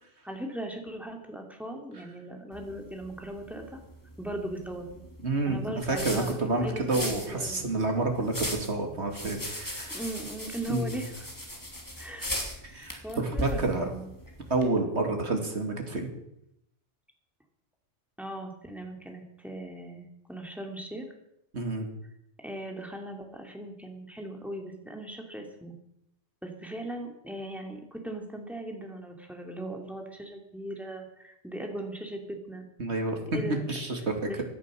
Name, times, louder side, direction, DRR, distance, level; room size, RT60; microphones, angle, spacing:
voice 1, 0.2-3.8 4.2-4.8 5.5-7.7 9.9-11.3 12.0-14.1 18.2-21.1 22.4-25.7 26.4-32.7 33.3-33.7 34.3-34.4, right 1 dB, ahead, 2 dB, 2.6 m, -39 dB
sound 1, 2.5-14.7, left 1 dB, 15° left, 2.9 m, -39 dB
voice 2, 5.2-10.0 10.7-11.0 12.6-13.9 14.5-16.1 21.5-21.9 32.8-33.2 33.7-34.4, right 2 dB, 65° right, 3 dB, 2.8 m, -29 dB
17.0 x 11.0 x 6.3 m, 0.81 s
omnidirectional pair, 1.2 m